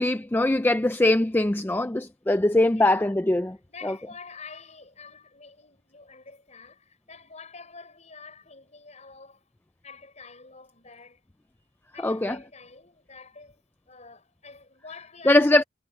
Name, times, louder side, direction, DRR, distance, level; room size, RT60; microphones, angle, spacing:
voice 1, 0.0-3.6 3.8-3.9 12.0-12.4 15.3-15.6, left 1 dB, 10° left, 0.4 m, -21 dB
voice 2, 2.7-3.1 3.5-9.4 9.8-11.2 11.9-15.6, left 4 dB, 35° left, 6.3 m, -47 dB
head